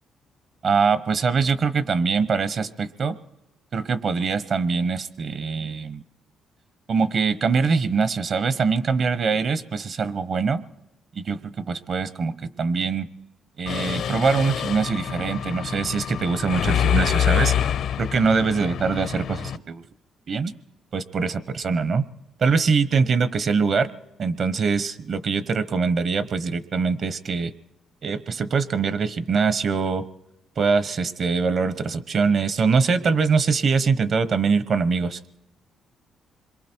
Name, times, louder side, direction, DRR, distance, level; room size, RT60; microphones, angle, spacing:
voice 1, 0.6-3.2 3.7-6.0 6.9-10.6 11.1-13.1 13.6-17.5 18.0-19.8 20.3-20.5 20.9-22.0 22.4-23.9 24.2-27.5 28.0-30.1 30.6-35.2, right 5 dB, 50° right, 14 dB, 1.0 m, -23 dB
Mechanisms, 13.7-19.6, left 9 dB, 70° left, 0.7 m, -26 dB
27.0 x 22.5 x 4.5 m, 0.94 s
cardioid pair, 115°, 0 cm